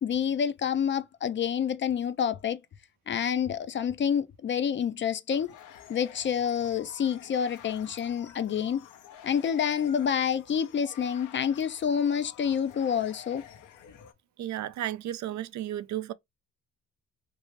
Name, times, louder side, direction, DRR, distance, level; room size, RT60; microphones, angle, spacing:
voice 1, 0.0-2.6 3.1-5.5 5.9-8.9 9.2-13.4, left 8 dB, 40° left, 0.5 m, -28 dB
sound 1, 5.3-14.1, left 9 dB, 80° left, 0.8 m, -50 dB
voice 2, 14.4-16.1, right 12 dB, 70° right, 0.5 m, -33 dB
3.1 x 2.7 x 3.1 m
cardioid pair, 90°, 30 cm